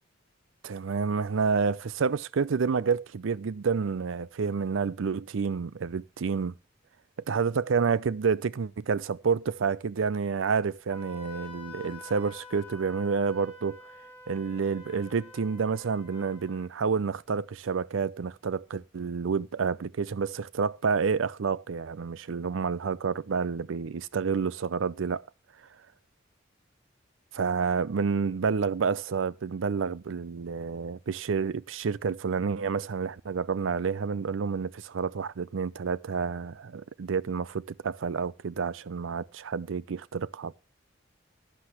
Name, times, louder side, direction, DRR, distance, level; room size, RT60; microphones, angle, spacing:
voice 1, 0.6-6.5 7.3-13.8 14.3-25.2 27.4-40.5, right 5 dB, 85° right, 0.5 m, -29 dB
Wind instrument woodwind instrument, 10.9-16.7, left 3 dB, 10° right, 4.9 m, -48 dB
11.5 x 10.0 x 3.0 m
head